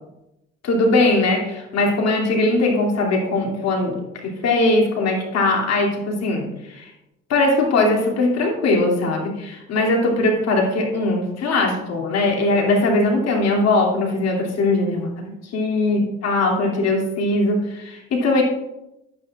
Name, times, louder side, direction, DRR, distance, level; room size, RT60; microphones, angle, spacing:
voice 1, 0.6-4.0 4.2-6.9 7.3-18.4, left 2 dB, 60° left, 0 dB, 2.7 m, -20 dB
11.0 x 8.7 x 2.4 m, 0.91 s
hypercardioid pair, 65°, 29 cm